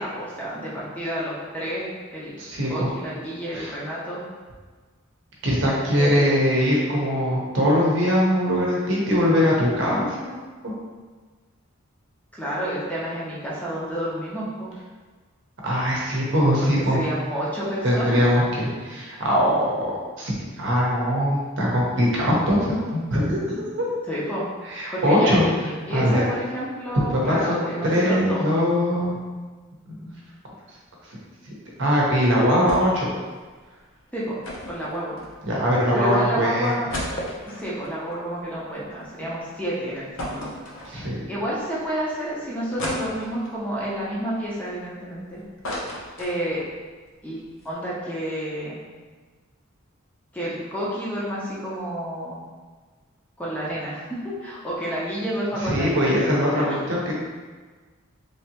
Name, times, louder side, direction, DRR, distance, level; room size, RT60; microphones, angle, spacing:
voice 1, 0.0-2.4 2.7-4.2 6.0-6.3 7.6-7.7 12.4-14.7 16.7-18.5 24.1-24.4 24.9-28.4 34.1-34.4 34.7-35.2 35.9-36.9 37.5-40.5 41.3-45.4 46.2-46.6 47.2-48.8 50.3-52.4 53.4-56.9, equal, 5° left, -7 dB, 0.6 m, -30 dB
voice 2, 2.4-2.9 3.5-3.7 5.4-10.4 10.6-10.7 15.6-17.0 17.8-19.9 20.2-23.9 24.7-25.4 25.9-26.2 27.1-29.2 29.9-30.1 31.8-33.1 35.4-36.7 40.9-41.2 55.6-57.1, equal, 60° right, -4 dB, 0.8 m, -22 dB
sound 1, 32.7-33.1 33.4-33.5 34.4-35.7 36.2-36.3 36.6-39.1 39.5-39.6 40.2-41.3 41.8-41.9 42.8-43.6 44.2-45.2 45.4-46.8 47.1-47.2 47.4-47.7, left 1 dB, 65° left, 0.6 m, -34 dB
3.2 x 2.7 x 2.8 m, 1.4 s
head